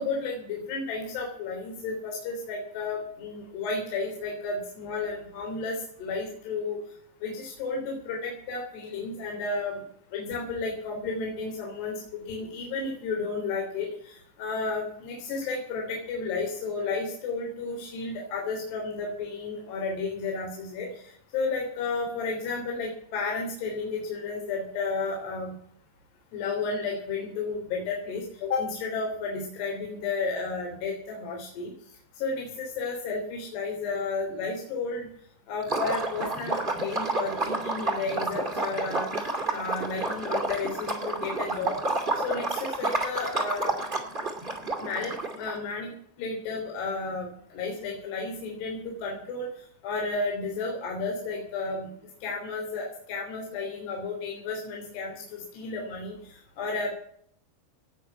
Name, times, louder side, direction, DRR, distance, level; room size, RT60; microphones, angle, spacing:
voice 1, 0.0-6.8 7.2-9.8 10.1-25.6 26.3-31.7 32.2-35.1 35.5-39.1 39.5-41.8 42.2-43.8 44.8-45.9 46.2-49.5 49.8-51.9 52.2-56.9, left 4 dB, 65° left, -1 dB, 5.5 m, -32 dB
Liquid, 35.6-45.5, right 2 dB, 15° right, 1.7 m, -30 dB
18.5 x 6.7 x 8.7 m, 0.62 s
omnidirectional pair, 5.1 m